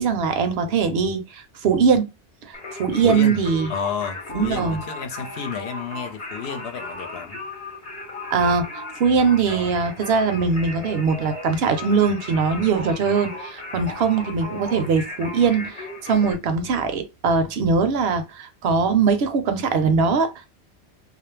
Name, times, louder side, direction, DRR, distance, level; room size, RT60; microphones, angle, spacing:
voice 1, 0.0-2.1 2.5-3.7 4.3-4.8 8.3-15.8 16.0-20.5, right 5 dB, 65° right, 0.8 m, -21 dB
Singing, 2.5-16.3, left 2 dB, 35° left, 0.9 m, -36 dB
voice 2, 3.0-3.4 3.7-7.4 13.8-14.0, left 7 dB, 65° left, 0.9 m, -31 dB
2.4 x 2.0 x 3.1 m
omnidirectional pair, 1.2 m